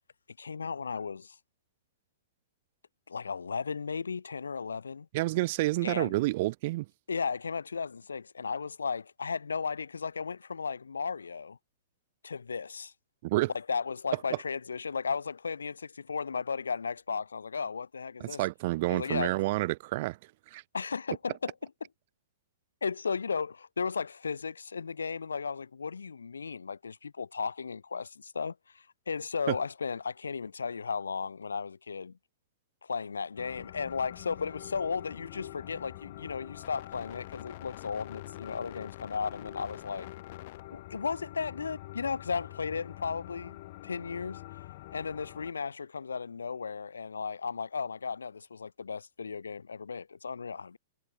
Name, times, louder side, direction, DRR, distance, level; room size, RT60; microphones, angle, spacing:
voice 1, 0.4-1.4 3.1-5.1 5.8-6.1 7.1-11.6 12.2-12.9 13.5-18.4 18.9-19.3 20.7-21.5 22.8-32.2 32.8-40.1 40.7-43.6 43.8-44.4 44.9-50.8, left 5 dB, 75° left, 2.1 m, -35 dB
voice 2, 5.1-6.9 13.2-13.5 18.2-20.2 20.5-20.6 29.5-29.6, right 19 dB, 45° right, 0.5 m, -29 dB
sound 1, 33.4-45.5, left 18 dB, 50° left, 0.7 m, -45 dB
figure-of-eight pair, 105°, 0 cm